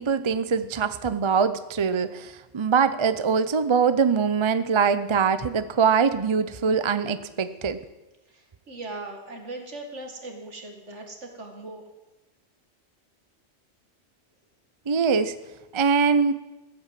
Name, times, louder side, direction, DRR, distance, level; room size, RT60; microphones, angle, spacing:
voice 1, 0.0-7.8 14.9-15.3 15.7-16.3, right 6 dB, 35° right, 12 dB, 0.5 m, -23 dB
voice 2, 8.3-11.8, right 2 dB, 75° right, 3 dB, 2.5 m, -39 dB
14.5 x 9.3 x 7.5 m, 1.0 s
omnidirectional pair, 1.2 m